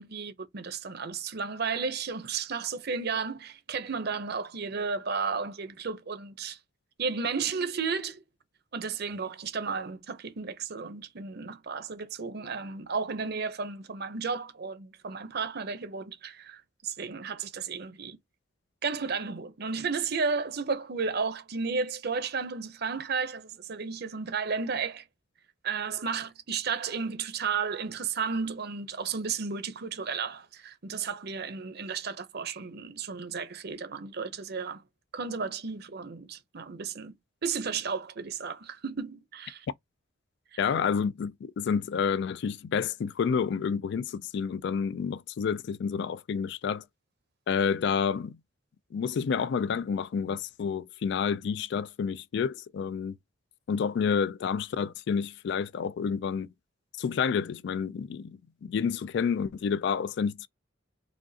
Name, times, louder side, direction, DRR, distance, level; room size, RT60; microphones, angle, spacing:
voice 1, 0.0-6.6 7.0-8.2 8.7-18.2 18.8-25.0 25.6-34.8 35.1-37.1 37.4-39.7 40.5-40.6, right 5 dB, 55° right, 0.7 m, -33 dB
voice 2, 40.6-46.8 47.5-48.4 48.9-53.1 53.7-56.5 57.0-60.5, left 6 dB, 60° left, 0.3 m, -29 dB
4.9 x 2.4 x 2.7 m
head